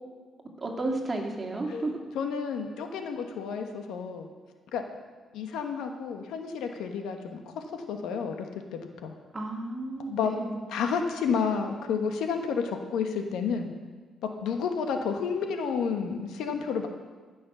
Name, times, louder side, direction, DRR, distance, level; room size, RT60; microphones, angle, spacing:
voice 1, 0.6-2.0 9.3-10.6, right 2 dB, 25° right, 1 dB, 2.2 m, -32 dB
voice 2, 2.1-4.3 4.7-4.8 5.3-7.4 7.7-8.5 8.7-9.1 10.1-10.3 10.7-13.7 14.4-16.9, left 6 dB, 85° left, 5 dB, 1.2 m, -30 dB
15.5 x 6.3 x 6.1 m, 1.4 s
cardioid pair, 90°, 0 cm